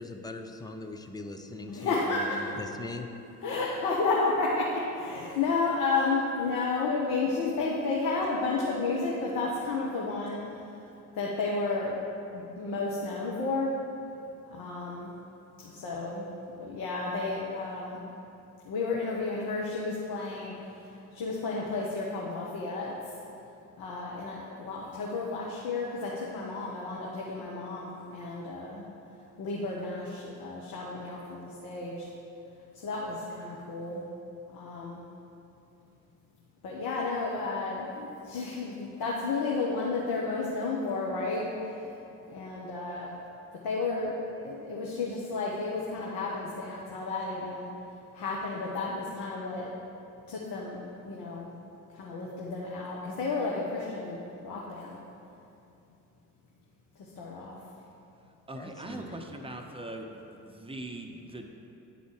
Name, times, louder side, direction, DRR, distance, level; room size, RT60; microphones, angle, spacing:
voice 1, 0.0-3.1 58.5-59.2, left 2 dB, 10° left, 4 dB, 0.4 m, -40 dB
voice 2, 1.7-2.4 3.4-10.4 11.2-11.9 12.3-13.7 14.5-15.1 15.8-18.0 18.7-20.5 21.1-22.9 23.8-28.8 29.4-32.0 32.8-34.0 34.5-35.0 36.6-41.4 42.3-43.1 43.6-44.2 44.4-47.7 48.2-49.7 50.3-50.8 51.0-51.5 52.0-55.0 57.2-57.6, left 3 dB, 50° left, -4 dB, 1.1 m, -32 dB
voice 3, 58.5-60.2 60.5-61.5, right 1 dB, 10° right, 3 dB, 0.8 m, -41 dB
10.5 x 4.0 x 4.7 m, 2.7 s
figure-of-eight pair, 50°, 45 cm